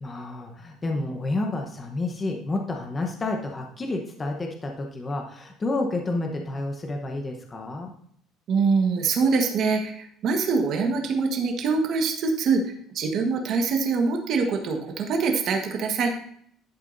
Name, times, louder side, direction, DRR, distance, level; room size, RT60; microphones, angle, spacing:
voice 1, 0.0-7.9, left 2 dB, 20° left, 2 dB, 1.0 m, -30 dB
voice 2, 8.5-16.1, right 4 dB, 50° right, 3 dB, 1.4 m, -24 dB
11.0 x 8.3 x 2.7 m, 0.66 s
cardioid pair, 155°, 0 cm